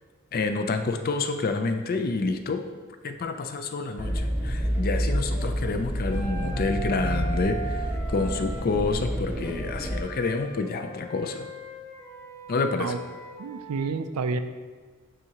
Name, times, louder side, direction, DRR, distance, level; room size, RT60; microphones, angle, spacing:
voice 1, 0.3-2.6 3.0-11.5 12.5-13.0, left 3 dB, 40° left, 7 dB, 0.4 m, -28 dB
sound 1, 4.0-10.0, equal, 5° right, 0.7 m, -29 dB
Wind instrument woodwind instrument, 6.1-8.7 9.3-13.9, right 4 dB, 10° left, 1.3 m, -40 dB
voice 2, 13.4-14.4, right 4 dB, 80° right, 10 dB, 0.4 m, -29 dB
9.1 x 3.7 x 2.9 m, 1.5 s
head